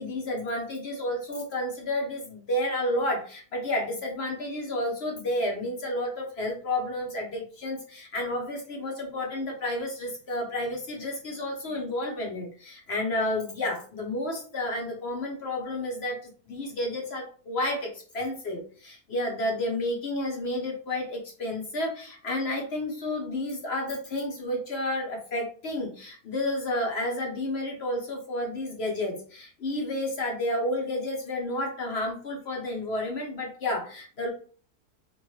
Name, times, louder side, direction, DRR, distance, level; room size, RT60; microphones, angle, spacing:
voice 1, 0.0-34.3, left 1 dB, 50° left, 0 dB, 0.9 m, -31 dB
3.0 x 2.6 x 3.1 m, 0.43 s
omnidirectional pair, 1.7 m